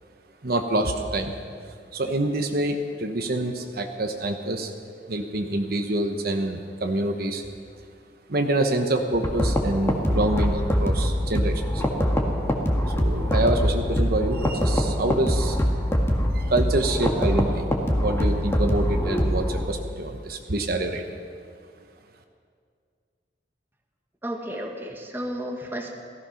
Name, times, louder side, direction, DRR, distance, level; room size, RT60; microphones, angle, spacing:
voice 1, 0.4-1.4 1.9-4.7 5.1-7.4 8.3-11.8 12.9-15.6 16.3-17.6 18.0-21.0, right 1 dB, 55° right, 5 dB, 1.1 m, -26 dB
sound 1, 9.2-19.6, equal, 15° left, 1.7 m, -24 dB
voice 2, 24.2-25.9, equal, 15° right, 2 dB, 1.5 m, -32 dB
16.5 x 15.0 x 5.8 m, 2.2 s
head